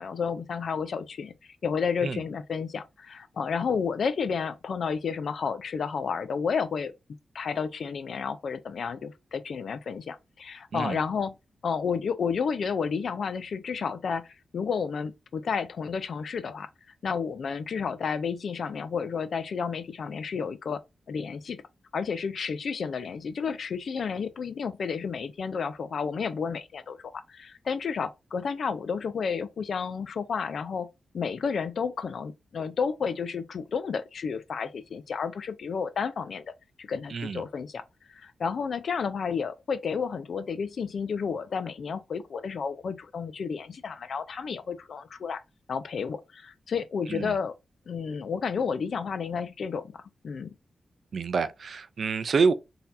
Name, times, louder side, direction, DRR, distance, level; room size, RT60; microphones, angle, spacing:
voice 1, 0.0-1.3 1.6-6.9 7.3-11.3 11.6-14.3 14.5-16.7 17.0-20.8 21.1-21.6 21.9-30.9 31.1-36.4 36.8-37.8 38.1-45.4 45.7-47.5 47.9-50.5, left 6 dB, 70° left, 0.5 m, -31 dB
voice 2, 37.1-37.4 47.1-47.4 51.1-52.5, right 5 dB, 65° right, 0.5 m, -27 dB
3.9 x 2.8 x 2.6 m
cardioid pair, 80°, 0 cm